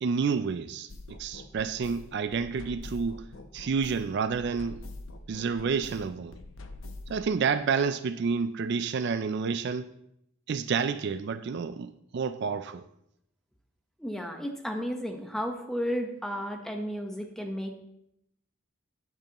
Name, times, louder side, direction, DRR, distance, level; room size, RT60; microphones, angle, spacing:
voice 1, 0.0-3.3 3.5-4.8 5.3-6.3 7.1-9.9 10.5-12.8, right 5 dB, 55° right, 0.4 m, -29 dB
sound 1, 0.9-7.3, left 2 dB, 75° left, 0.8 m, -45 dB
voice 2, 14.0-17.8, equal, ahead, 1.0 m, -33 dB
12.0 x 9.2 x 3.0 m
head